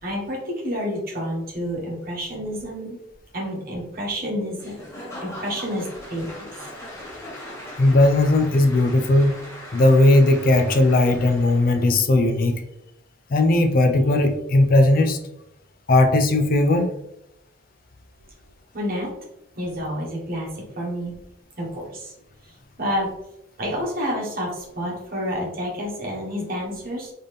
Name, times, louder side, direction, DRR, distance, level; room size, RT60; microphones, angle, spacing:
voice 1, 0.0-3.0 3.3-4.8 5.2-6.4 18.7-19.1 19.5-21.1 21.6-22.1 22.8-23.1 23.6-27.1, equal, 45° right, -3 dB, 1.5 m, -29 dB
Applause / Crowd, 4.6-11.9, left 1 dB, 15° left, 1.1 m, -40 dB
voice 2, 7.8-9.4 9.7-12.6 13.3-15.2 15.9-16.9, left 2 dB, 45° left, 7 dB, 0.4 m, -17 dB
4.0 x 3.6 x 3.4 m, 0.83 s
head